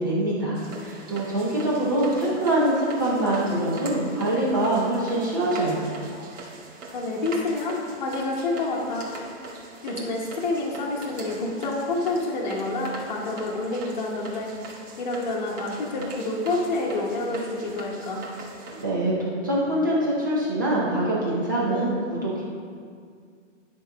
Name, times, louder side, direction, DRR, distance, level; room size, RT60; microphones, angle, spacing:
voice 1, 0.0-5.8 18.7-22.4, right 1 dB, 15° right, -6 dB, 0.6 m, -24 dB
sound 1, 0.5-18.8, right 3 dB, 80° right, 2.1 m, -41 dB
voice 2, 6.9-9.1 9.8-14.5 15.0-18.2, left 2 dB, 35° left, -4 dB, 1.1 m, -28 dB
11.0 x 4.1 x 6.0 m, 2.1 s
hypercardioid pair, 180°, 37 cm